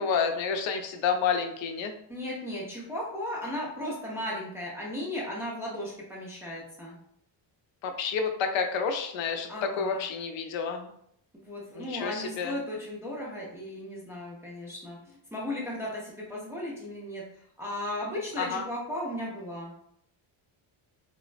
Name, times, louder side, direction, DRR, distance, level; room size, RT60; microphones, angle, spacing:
voice 1, 0.0-1.9 7.8-10.9 11.8-12.6 18.4-18.6, left 6 dB, 70° left, 5 dB, 0.5 m, -29 dB
voice 2, 2.1-7.0 9.5-10.0 11.3-17.2 17.6-19.7, left 1 dB, 5° right, -6 dB, 0.3 m, -36 dB
3.2 x 2.0 x 2.4 m, 0.71 s
cardioid pair, 165°, 48 cm